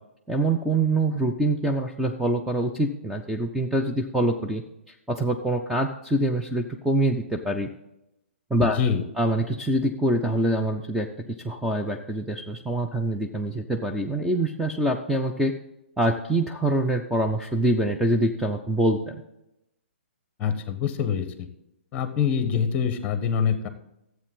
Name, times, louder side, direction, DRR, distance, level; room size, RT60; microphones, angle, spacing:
voice 1, 0.3-4.6 5.1-7.7 8.5-8.8 9.2-11.1 11.4-15.5 16.0-19.2, right 1 dB, 5° right, 1 dB, 0.5 m, -25 dB
voice 2, 8.6-9.0 20.4-21.5 21.9-23.7, left 7 dB, 25° left, 10 dB, 1.0 m, -25 dB
12.0 x 8.1 x 3.6 m, 0.86 s
figure-of-eight pair, 130°, 7 cm